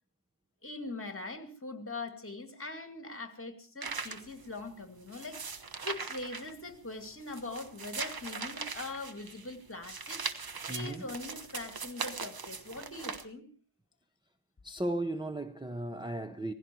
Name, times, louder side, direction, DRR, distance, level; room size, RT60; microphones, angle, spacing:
voice 1, 0.6-13.5, left 2 dB, 25° left, 2.4 m, -42 dB
sound 1, 3.8-13.2, right 5 dB, 45° right, 1.3 m, -40 dB
voice 2, 10.7-11.1 14.6-16.5, right 1 dB, 10° right, 0.8 m, -35 dB
18.0 x 15.5 x 4.5 m
wide cardioid pair, 85°, 49 cm